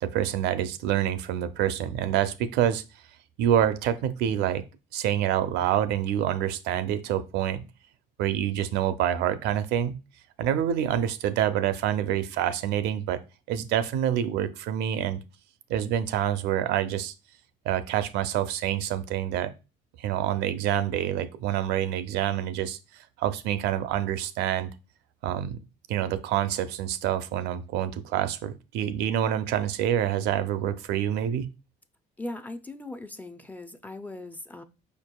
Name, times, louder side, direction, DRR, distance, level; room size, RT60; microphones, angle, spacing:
voice 1, 0.0-2.8 3.4-4.6 4.9-7.6 8.2-9.9 10.4-13.2 13.5-15.2 15.7-17.1 17.7-19.5 20.0-22.8 23.2-24.7 25.2-25.6 25.9-31.5, right 10 dB, 85° right, 0.5 m, -27 dB
voice 2, 32.2-34.6, left 2 dB, 10° left, 0.4 m, -39 dB
5.1 x 4.5 x 2.2 m
cardioid pair, 110°, 17 cm